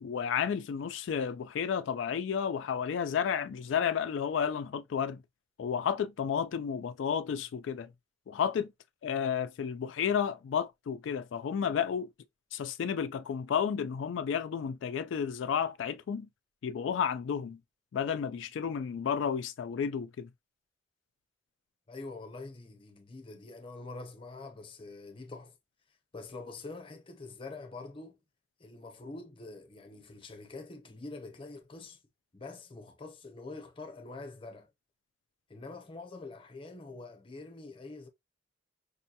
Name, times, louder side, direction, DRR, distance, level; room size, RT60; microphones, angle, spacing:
voice 1, 0.0-5.2 5.6-7.9 8.3-8.7 9.0-12.1 12.5-16.3 16.6-17.6 17.9-20.3, left 7 dB, 85° left, 0.3 m, -32 dB
voice 2, 21.9-25.6 26.1-28.2 28.6-32.0 32.3-34.7 35.5-38.1, left 3 dB, 30° left, 0.7 m, -45 dB
5.3 x 2.2 x 2.7 m
head